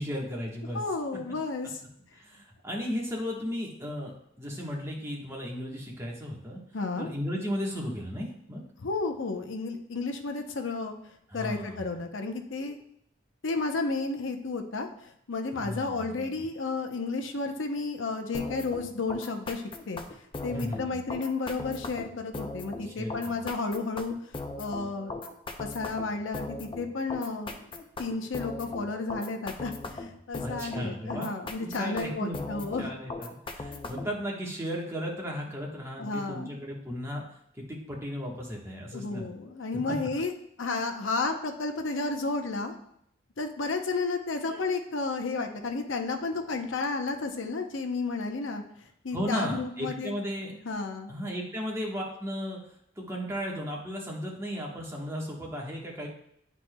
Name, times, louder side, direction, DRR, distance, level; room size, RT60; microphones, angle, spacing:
voice 1, 0.0-0.8 2.2-6.6 7.0-8.6 11.3-11.9 15.6-16.4 20.5-21.0 22.8-23.4 30.4-31.3 31.6-37.2 37.5-39.3 39.9-40.0 44.5-44.7 49.1-50.5 51.1-52.6 53.0-56.1, equal, 15° right, -2 dB, 1.2 m, -35 dB
voice 2, 0.7-1.8 6.7-7.1 8.8-10.9 11.3-12.8 13.4-20.0 20.4-24.1 24.6-25.1 25.6-27.5 28.0-32.9 33.7-33.8 36.0-36.5 38.9-40.3 40.6-42.7 43.4-48.6 49.0-50.1 50.6-51.1, left 3 dB, 75° left, 5 dB, 0.7 m, -32 dB
sound 1, 18.3-34.2, left 2 dB, 25° left, 0.5 m, -39 dB
10.0 x 4.2 x 2.2 m, 0.72 s
head